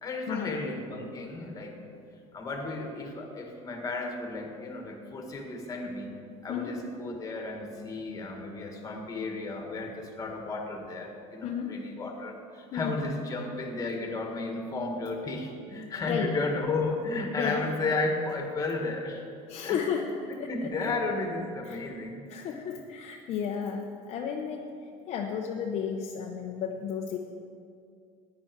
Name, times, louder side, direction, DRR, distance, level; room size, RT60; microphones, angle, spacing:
voice 1, 0.0-1.8 2.1-6.1 6.4-19.2 19.6-19.8 20.5-22.2, left 3 dB, 25° left, 2 dB, 1.8 m, -33 dB
voice 2, 6.5-6.8 11.4-12.1 12.7-13.0 16.0-16.3 17.4-17.6 19.5-20.1 20.4-20.9 21.6-21.8 22.3-24.6 25.1-27.2, left 7 dB, 45° left, 1 dB, 0.9 m, -33 dB
14.5 x 10.0 x 4.7 m, 2.4 s
cardioid pair, 155°, 15 cm